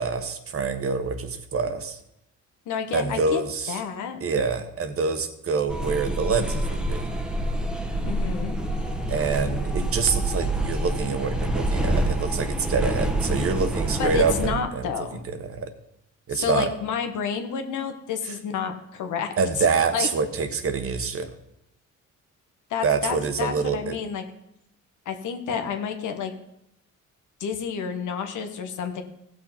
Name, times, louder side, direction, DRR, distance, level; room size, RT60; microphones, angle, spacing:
voice 1, 0.0-2.0 2.9-3.8 4.2-7.1 9.1-14.9 15.4-15.7 16.3-16.7 18.3-18.4 19.4-21.3 22.8-24.0, right 5 dB, 50° right, 9 dB, 1.2 m, -26 dB
voice 2, 2.7-3.4 3.7-4.2 8.0-8.6 14.0-15.2 16.3-19.6 19.9-20.1 22.7-24.2 25.0-26.3 27.4-29.0, left 7 dB, 80° left, 6 dB, 1.3 m, -30 dB
sound 1, 5.7-14.5, right 1 dB, 5° right, 1.1 m, -27 dB
15.5 x 6.2 x 4.3 m, 0.81 s
cardioid pair, 90°, 30 cm